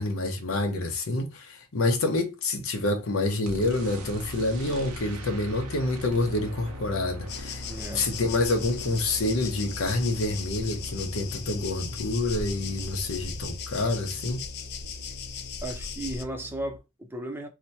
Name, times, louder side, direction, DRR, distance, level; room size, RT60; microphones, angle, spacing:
voice 1, 0.0-7.6 7.9-14.4, left 2 dB, 70° left, 0.8 m, -27 dB
sound 1, 3.4-16.8, left 1 dB, 90° right, 0.8 m, -40 dB
sound 2, 7.3-16.2, left 6 dB, 50° left, 0.4 m, -38 dB
voice 2, 7.6-8.1 15.6-17.5, right 1 dB, 10° right, 0.6 m, -35 dB
2.9 x 2.1 x 4.0 m
head